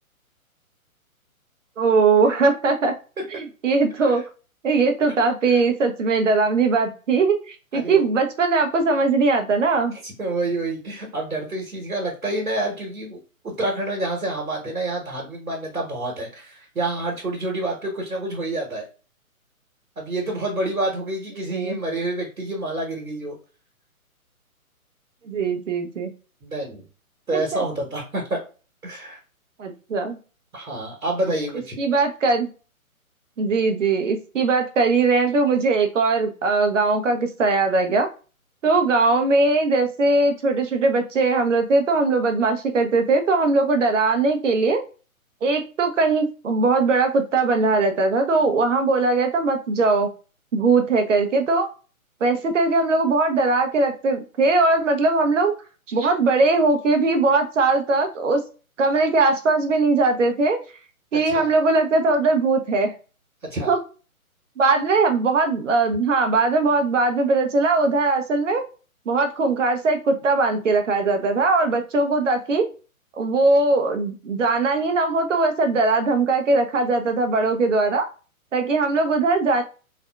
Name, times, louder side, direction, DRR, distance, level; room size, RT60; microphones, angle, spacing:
voice 1, 1.8-2.9 3.3-4.2 4.6-9.9 21.5-21.8 25.3-26.1 27.3-27.4 29.6-30.2 31.8-32.5 33.4-38.1 38.6-44.8 45.4-50.1 50.5-51.7 52.2-55.5 55.9-58.4 58.8-60.6 61.1-62.9 63.7-63.8 64.6-68.6 69.1-72.6 73.2-78.1 78.5-79.6, right 3 dB, 60° right, 6 dB, 0.7 m, -20 dB
voice 2, 7.7-8.1 10.0-18.8 20.0-23.3 26.4-26.8 27.3-28.4 28.8-29.2 30.5-31.8 61.1-61.5 63.4-63.7, right 2 dB, 85° right, -1 dB, 1.2 m, -28 dB
3.5 x 2.2 x 2.3 m, 0.35 s
figure-of-eight pair, 135°, 43 cm